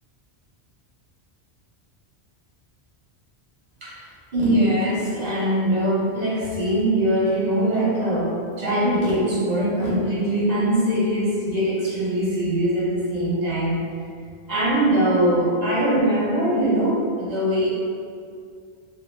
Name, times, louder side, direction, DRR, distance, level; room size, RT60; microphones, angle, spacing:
voice 1, 4.3-13.8 14.5-17.7, right 1 dB, 45° right, -7 dB, 0.8 m, -22 dB
2.3 x 2.0 x 3.1 m, 2.2 s
omnidirectional pair, 1.1 m